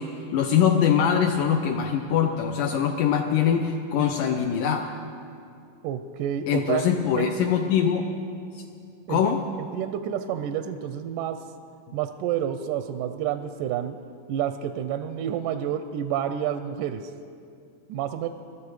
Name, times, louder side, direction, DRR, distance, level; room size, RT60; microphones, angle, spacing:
voice 1, 0.0-4.9 6.5-8.1 8.5-8.6 9.1-9.4 11.9-12.0, left 8 dB, 75° left, 3 dB, 2.2 m, -23 dB
voice 2, 5.8-6.8 7.2-7.3 9.1-9.2 9.7-11.4 11.9-14.0 14.3-17.0 17.9-18.3, right 10 dB, 80° right, 9 dB, 2.0 m, -29 dB
23.0 x 13.0 x 4.8 m, 2.5 s
omnidirectional pair, 3.9 m